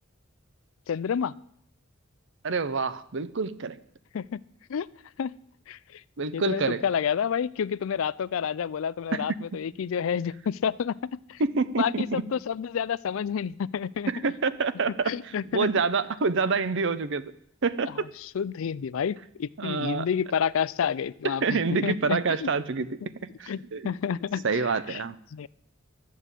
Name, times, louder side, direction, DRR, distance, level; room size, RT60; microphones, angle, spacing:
voice 1, 0.9-1.3 4.1-4.4 4.7-4.9 5.2-5.3 5.7-6.0 6.3-11.4 11.8-14.1 15.1-15.7 18.2-22.5 23.5-24.6 24.9-25.0 25.3-25.5, left 7 dB, 70° left, 20 dB, 0.4 m, -29 dB
voice 2, 2.4-3.8 6.2-6.8 9.1-9.2 11.4-12.2 14.1-15.1 15.5-17.3 17.6-18.1 19.6-20.1 21.2-23.0 23.4-23.9 24.4-25.2, right 4 dB, 60° right, 15 dB, 0.6 m, -27 dB
12.0 x 7.5 x 8.2 m, 0.71 s
head